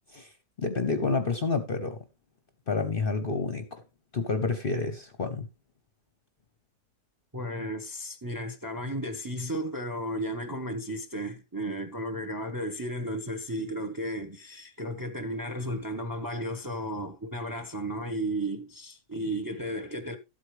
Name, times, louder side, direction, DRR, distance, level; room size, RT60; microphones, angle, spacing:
voice 1, 0.6-2.0 2.7-3.8 4.1-5.5, left 4 dB, 40° left, 0.9 m, -29 dB
voice 2, 7.3-20.2, right 1 dB, 15° right, 0.9 m, -34 dB
13.5 x 8.1 x 3.2 m
omnidirectional pair, 1.6 m